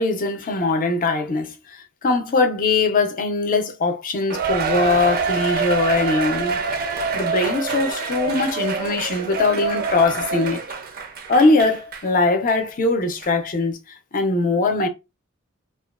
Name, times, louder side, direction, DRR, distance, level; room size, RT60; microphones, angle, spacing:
voice 1, 0.0-6.6 7.1-10.6 11.3-13.8 14.1-14.9, left 3 dB, 40° left, 0.5 m, -21 dB
Cheering, 4.3-12.1 12.5-12.6 13.2-13.3, right 4 dB, 45° right, 0.4 m, -26 dB
2.4 x 2.2 x 2.3 m
head